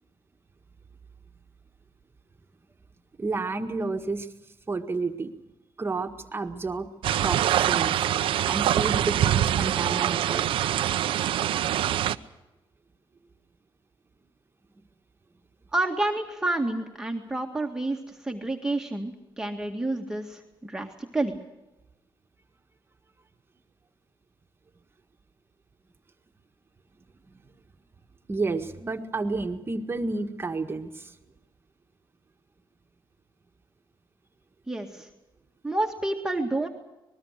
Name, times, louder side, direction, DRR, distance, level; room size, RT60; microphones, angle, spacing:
voice 1, 3.2-4.3 4.7-5.3 5.8-6.9 7.2-7.9 8.4-10.5 28.3-31.1, right 3 dB, 25° right, 5 dB, 1.7 m, -30 dB
sound 1, 7.0-12.2, right 11 dB, 80° right, 0.8 m, -24 dB
voice 2, 15.7-21.3 34.7-35.1 35.6-36.7, right 2 dB, 5° right, 0 dB, 2.0 m, -29 dB
25.0 x 21.0 x 6.6 m, 1.0 s
cardioid pair, 120°, 9 cm